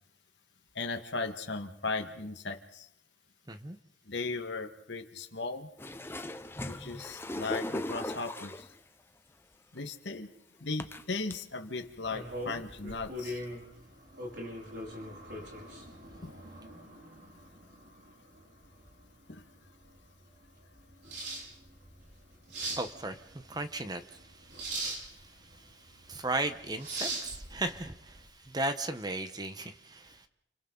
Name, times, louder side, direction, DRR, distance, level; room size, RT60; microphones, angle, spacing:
voice 1, 0.8-2.9 4.1-5.7 6.6-8.7 9.7-10.3 10.6-13.4 16.2-16.3 19.3-19.4, left 3 dB, 75° left, 4 dB, 1.8 m, -37 dB
sound 1, 5.8-8.8 9.8-9.9 10.8-11.4 11.9-12.0 12.4-12.8 13.5-13.6, left 1 dB, 15° left, 0.8 m, -38 dB
sound 2, 12.0-28.2, right 1 dB, 65° right, 5.6 m, -42 dB
voice 2, 22.8-23.2 23.5-24.0 26.1-30.2, right 2 dB, 20° right, 9 dB, 1.0 m, -35 dB
29.0 x 24.5 x 4.0 m, 0.79 s
head